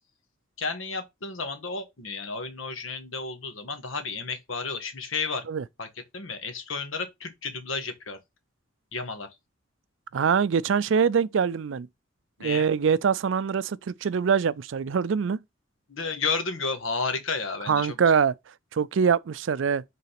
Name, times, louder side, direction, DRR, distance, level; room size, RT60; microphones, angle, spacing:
voice 1, 0.6-5.5 5.8-5.9 6.1-8.2 8.9-9.3 12.4-12.7 15.9-17.9, left 4 dB, 85° left, 1.6 m, -32 dB
voice 2, 10.1-11.9 12.4-15.4 17.7-18.3 18.7-19.8, right 6 dB, 70° right, 0.4 m, -24 dB
5.6 x 3.9 x 5.8 m
head